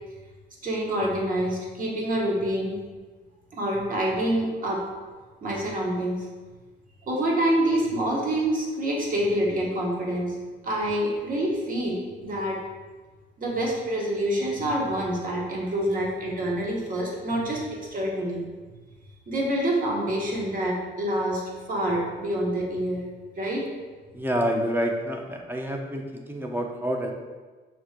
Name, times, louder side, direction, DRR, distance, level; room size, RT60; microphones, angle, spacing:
voice 1, 0.6-2.8 3.5-4.8 5.4-6.2 7.1-10.4 10.6-12.6 13.4-18.4 19.3-23.0 23.4-23.7, right 1 dB, 45° right, -3 dB, 1.2 m, -27 dB
voice 2, 24.1-27.1, equal, 10° right, 2 dB, 0.6 m, -28 dB
5.8 x 3.1 x 2.5 m, 1.3 s
cardioid pair, 90°, 20 cm